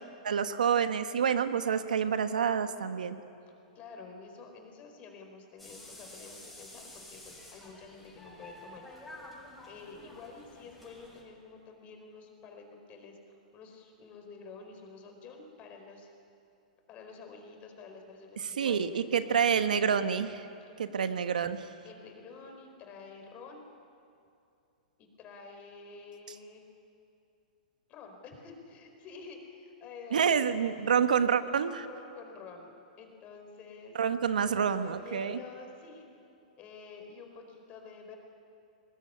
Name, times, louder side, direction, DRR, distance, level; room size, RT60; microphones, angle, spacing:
voice 1, 0.2-3.2 18.6-20.5 20.8-21.7 30.1-31.8 33.9-35.4, right 7 dB, 90° right, 10 dB, 1.2 m, -28 dB
voice 2, 3.7-8.9 9.6-16.1 16.9-19.8 21.8-23.6 25.0-26.7 27.9-30.5 31.8-34.0 34.5-36.1 36.6-38.2, left 4 dB, 35° left, 4 dB, 4.5 m, -49 dB
sound 1, 5.6-11.2, left 1 dB, ahead, 6.7 m, -50 dB
21.0 x 19.0 x 9.9 m, 2.6 s
hypercardioid pair, 130°, 4 cm